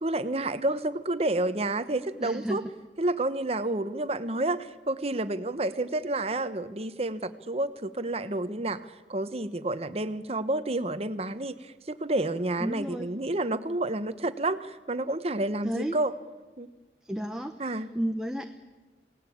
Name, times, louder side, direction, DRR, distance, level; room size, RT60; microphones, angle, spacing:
voice 1, 0.0-2.6 3.0-16.1 16.6-16.7 17.6-17.9, right 2 dB, 35° right, 11 dB, 1.1 m, -30 dB
voice 2, 2.2-2.6 12.6-13.1 15.6-16.0 17.0-18.4, right 1 dB, 5° right, 5 dB, 0.9 m, -32 dB
28.5 x 18.5 x 8.7 m, 1.3 s
head